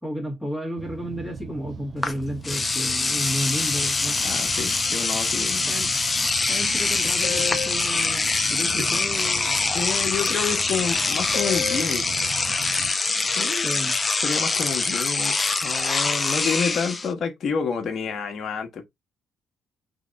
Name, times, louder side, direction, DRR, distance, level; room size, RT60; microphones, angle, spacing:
voice 1, 0.0-4.2 5.6-9.6 13.6-14.0, equal, ahead, 1.8 m, -32 dB
sound 1, 0.8-12.9, right 6 dB, 50° right, 0.9 m, -39 dB
Engine / Domestic sounds home sounds, 2.0-2.1 2.4-17.1, left 3 dB, 25° left, 0.8 m, -24 dB
voice 2, 4.2-5.7 8.6-8.9 9.7-12.2 13.4-13.7 14.2-15.3 15.6-18.8, left 6 dB, 55° left, 1.1 m, -29 dB
sound 2, 6.9-7.8 10.1-10.3 11.3-11.9, left 8 dB, 80° left, 0.5 m, -32 dB
4.0 x 3.2 x 3.9 m
cardioid pair, 95°, 0 cm